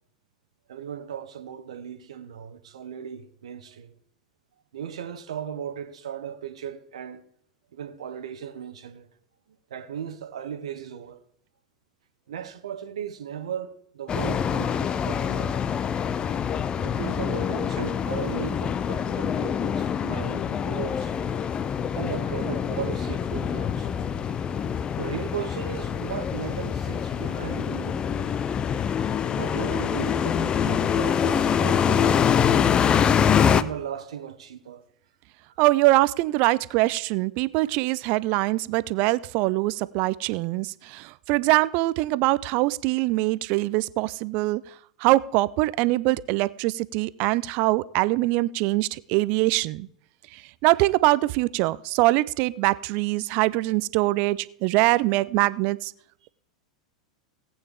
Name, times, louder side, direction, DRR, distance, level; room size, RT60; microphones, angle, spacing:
voice 1, 0.7-3.9 4.7-7.2 7.7-9.1 9.5-11.2 12.3-15.7 16.8-21.1 21.9-23.9 25.0-28.2 28.9-32.2 33.4-34.8, right 9 dB, 70° right, 1.0 m, -36 dB
sound 1, 14.1-33.6, left 8 dB, 25° left, 0.6 m, -25 dB
voice 2, 35.6-44.6 45.0-49.9 50.3-55.9, right 19 dB, 45° right, 0.4 m, -23 dB
17.5 x 8.9 x 3.6 m
figure-of-eight pair, 90°, 3 cm